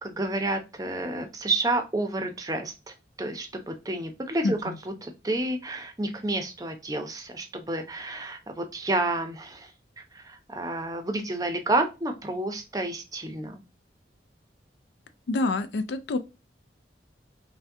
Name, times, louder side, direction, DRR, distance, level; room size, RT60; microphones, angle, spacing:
voice 1, 0.0-2.7 3.2-4.7 5.0-9.7 10.1-13.6, right 2 dB, 20° right, 0.6 m, -30 dB
voice 2, 4.4-4.8 15.3-16.2, left 2 dB, 75° left, 0.4 m, -27 dB
5.7 x 2.2 x 2.7 m
head